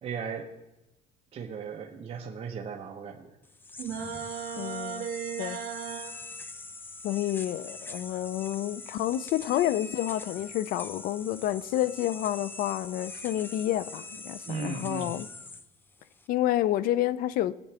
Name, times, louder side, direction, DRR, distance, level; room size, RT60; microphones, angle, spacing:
voice 1, 0.0-0.5 1.3-3.4 14.5-15.2, right 6 dB, 40° right, 1.1 m, -37 dB
sound 1, 3.4-16.3, left 3 dB, 15° left, 0.6 m, -43 dB
sound 2, 3.8-6.1, right 8 dB, 70° right, 2.2 m, -36 dB
voice 2, 4.6-5.1 5.4-5.6 7.0-15.3 16.3-17.5, left 13 dB, 70° left, 0.5 m, -29 dB
19.5 x 8.5 x 3.4 m
cardioid pair, 140°, 16 cm